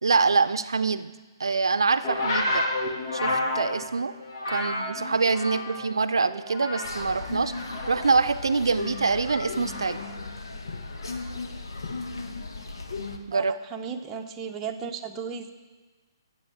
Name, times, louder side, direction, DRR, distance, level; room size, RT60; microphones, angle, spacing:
voice 1, 0.0-1.1 1.4-2.7 3.1-4.1 4.5-7.5 7.9-10.0 13.3-13.5, right 4 dB, 80° right, 12 dB, 0.5 m, -25 dB
sound 1, 2.0-6.0 6.3-7.2 7.5-10.1 11.0-11.3, left 1 dB, 50° left, 2.0 m, -31 dB
sound 2, 6.8-13.2, left 3 dB, 75° left, 1.1 m, -36 dB
voice 2, 13.3-15.5, right 6 dB, 20° right, 2 dB, 0.8 m, -35 dB
17.0 x 7.6 x 3.5 m, 1.3 s
figure-of-eight pair, 135°, 2 cm